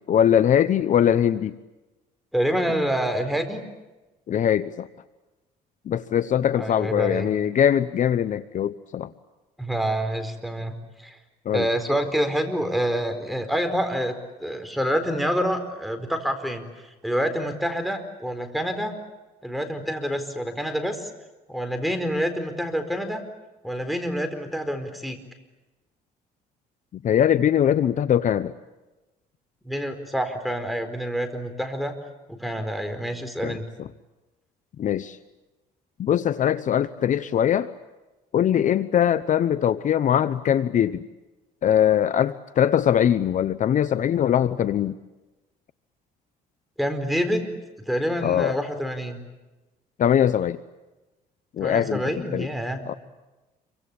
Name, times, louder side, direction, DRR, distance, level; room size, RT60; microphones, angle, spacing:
voice 1, 0.1-1.6 4.3-4.9 5.9-9.1 11.4-11.7 27.0-28.5 33.4-33.9 34.8-35.2 36.0-37.7 38.3-41.0 41.6-44.9 48.2-48.6 50.0-50.6 51.5-52.0 52.3-52.5 52.9-53.0, left 9 dB, 50° left, 14 dB, 0.9 m, -21 dB
voice 2, 2.3-3.6 6.6-7.3 9.6-11.2 11.5-14.1 14.4-19.0 19.4-21.1 21.5-23.2 23.6-25.2 29.6-31.9 32.3-33.6 46.8-47.5 47.9-49.2 51.6-52.8, equal, ahead, 7 dB, 4.4 m, -27 dB
28.0 x 24.5 x 8.7 m, 1.1 s
cardioid pair, 110°, 17 cm